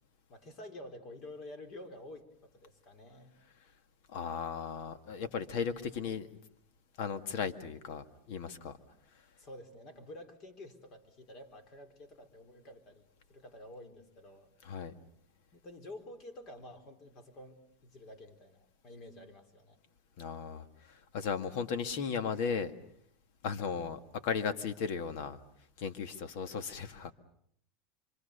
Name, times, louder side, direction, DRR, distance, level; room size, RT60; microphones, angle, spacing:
voice 1, 0.3-3.3 9.4-13.0 13.3-14.5 15.5-19.8, left 1 dB, 45° left, 8 dB, 4.2 m, -50 dB
voice 2, 4.1-6.3 7.0-8.8 14.6-14.9 20.2-22.7 23.4-25.4 25.8-27.1, left 6 dB, 65° left, 10 dB, 1.9 m, -36 dB
26.0 x 25.5 x 6.8 m, 0.68 s
supercardioid pair, 130°, 0 cm